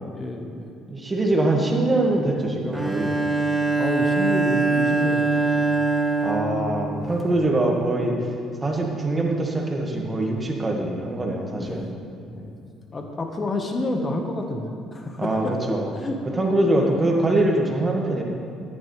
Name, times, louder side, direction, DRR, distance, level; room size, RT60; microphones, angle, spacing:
voice 1, 0.1-0.7 1.5-1.8 3.8-5.9 7.2-7.3 11.6-11.9 12.3-12.5 12.9-15.5 15.9-16.2, left 2 dB, 35° left, 3 dB, 1.3 m, -30 dB
voice 2, 0.9-3.2 6.2-8.1 8.6-11.9 15.2-15.9 16.4-18.2, right 2 dB, 25° right, 1 dB, 1.8 m, -23 dB
Bowed string instrument, 2.7-7.3, right 3 dB, 10° right, 1.4 m, -23 dB
13.5 x 10.0 x 3.4 m, 2.4 s
hypercardioid pair, 60°, 0 cm